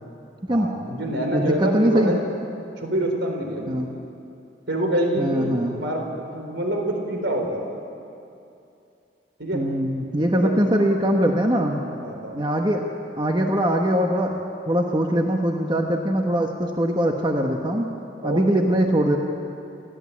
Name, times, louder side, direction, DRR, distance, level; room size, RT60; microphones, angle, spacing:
voice 1, 0.5-2.2 2.8-3.8 4.7-6.0 6.3-7.6 9.4-9.7 10.3-10.6 12.0-12.4 18.2-18.8, right 1 dB, 75° right, 2 dB, 4.1 m, -26 dB
voice 2, 1.3-2.1 3.7-3.9 5.2-5.8 9.5-11.8 12.3-12.8 13.2-17.9 18.2-19.2, equal, 25° right, 2 dB, 1.2 m, -22 dB
29.0 x 13.5 x 8.5 m, 2.7 s
head